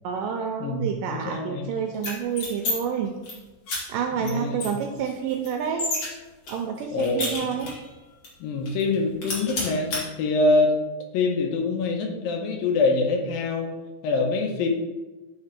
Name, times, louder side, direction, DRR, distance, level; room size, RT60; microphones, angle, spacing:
voice 1, 0.0-3.1 3.9-5.9 6.5-7.7, right 7 dB, 80° right, 3 dB, 1.9 m, -29 dB
voice 2, 0.6-1.7 4.2-4.6 6.9-7.5 8.4-9.9 10.2-10.7 11.1-13.7 14.0-14.7, left 3 dB, 80° left, 2 dB, 2.6 m, -24 dB
sound 1, 1.9-2.7 3.1-3.3 3.7-3.8 4.2-4.3 4.6-6.1 6.5-7.9 8.2-8.3 8.7-8.9 9.2-10.0, left 2 dB, 45° left, 2.4 m, -30 dB
8.8 x 3.3 x 4.3 m, 1.2 s
omnidirectional pair, 4.3 m